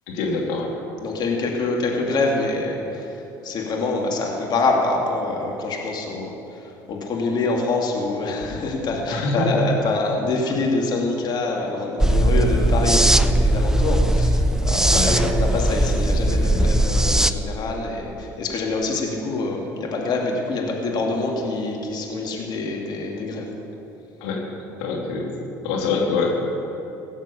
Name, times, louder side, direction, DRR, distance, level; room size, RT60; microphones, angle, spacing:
voice 1, 0.1-0.7 9.1-9.6 14.9-15.2 24.2-24.4 24.8-25.3 25.6-26.4, left 3 dB, 75° left, -1 dB, 2.8 m, -24 dB
voice 2, 1.0-23.5, left 3 dB, 50° left, -1 dB, 2.6 m, -25 dB
sound 1, 12.0-17.3, right 1 dB, 5° right, 0.6 m, -19 dB
17.5 x 7.3 x 7.2 m, 2.9 s
hypercardioid pair, 70°, 9 cm